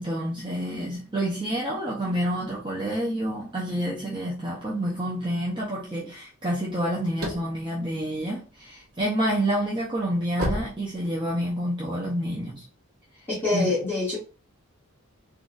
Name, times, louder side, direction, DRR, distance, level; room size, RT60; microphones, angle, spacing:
voice 1, 0.0-12.6 13.5-13.7, equal, 20° right, 0.6 m, -28 dB
sound 1, 7.0-8.9 9.3-11.6, equal, 70° right, 1.1 m, -32 dB
voice 2, 13.3-14.2, left 3 dB, 10° left, 1.4 m, -25 dB
3.8 x 2.4 x 2.4 m
head